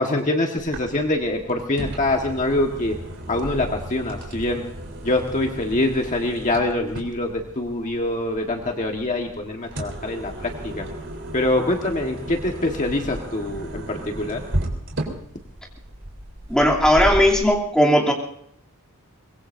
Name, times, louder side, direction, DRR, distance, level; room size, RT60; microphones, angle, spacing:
voice 1, 0.0-3.0 3.3-4.6 5.0-10.9 11.3-14.4, left 2 dB, 35° left, 1 dB, 1.5 m, -24 dB
sound 1, 0.6-17.4, right 1 dB, 55° right, 3.8 m, -34 dB
voice 2, 16.5-18.1, equal, 5° left, -2 dB, 2.9 m, -17 dB
24.0 x 21.5 x 2.7 m, 0.71 s
head